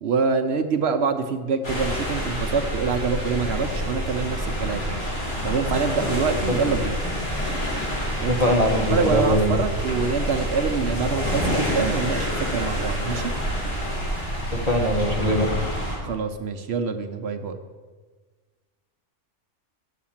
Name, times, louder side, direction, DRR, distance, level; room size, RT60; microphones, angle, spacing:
voice 1, 0.0-5.0 5.4-7.0 8.2-8.3 8.9-13.3 16.0-17.6, right 5 dB, 65° right, 7 dB, 0.9 m, -25 dB
sound 1, 1.6-16.0, equal, 55° left, 3.6 m, -27 dB
voice 2, 8.3-9.6 14.5-15.5, equal, 35° left, 2 dB, 1.1 m, -22 dB
8.4 x 7.4 x 7.1 m, 1.4 s
omnidirectional pair, 1.3 m